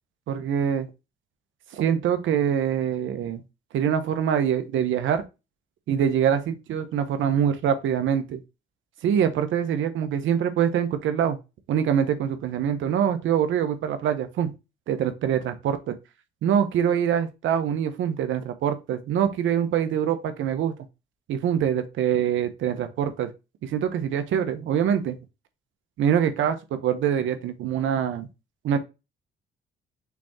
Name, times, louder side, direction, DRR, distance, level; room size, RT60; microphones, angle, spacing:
voice 1, 0.3-0.9 1.8-3.4 3.7-5.2 5.9-8.4 9.0-11.4 11.7-14.5 14.9-15.9 16.4-20.7 21.3-23.3 23.6-25.2 26.0-28.3 28.6-28.8, right 9 dB, 80° right, 1.2 m, -24 dB
6.1 x 3.6 x 4.3 m
cardioid pair, 90°, 20 cm